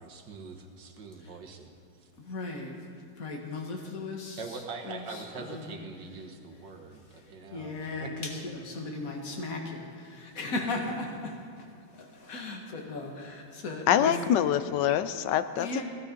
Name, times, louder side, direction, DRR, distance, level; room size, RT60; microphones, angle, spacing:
voice 1, 0.0-1.7 2.0-2.1 4.4-8.1, right 4 dB, 70° right, 4 dB, 1.9 m, -43 dB
voice 2, 2.3-2.7 3.2-4.4 4.8-5.0 5.5-5.7 7.5-9.8 10.2-11.1 12.0-14.1 15.6-15.8, left 2 dB, 45° left, 1 dB, 2.0 m, -36 dB
voice 3, 13.9-15.8, left 10 dB, 75° left, 12 dB, 1.1 m, -25 dB
17.0 x 12.5 x 5.2 m, 2.5 s
omnidirectional pair, 2.1 m